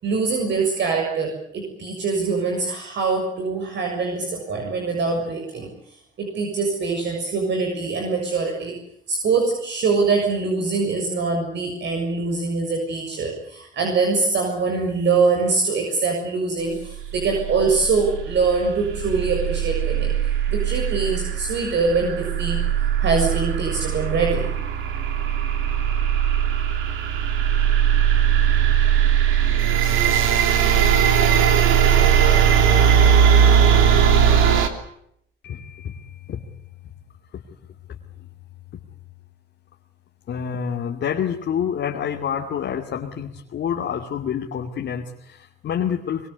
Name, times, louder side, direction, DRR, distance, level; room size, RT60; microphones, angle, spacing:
voice 1, 0.0-5.7 6.2-8.8 9.1-22.6 23.0-24.5, right 4 dB, 65° right, 1 dB, 6.9 m, -23 dB
sound 1, 17.0-34.7, right 8 dB, 90° right, 3.0 m, -19 dB
voice 2, 35.4-36.5 37.3-37.4 37.9-38.0 40.3-46.3, left 8 dB, 65° left, 0 dB, 2.6 m, -28 dB
24.0 x 23.0 x 8.3 m, 0.72 s
cardioid pair, 90°, 20 cm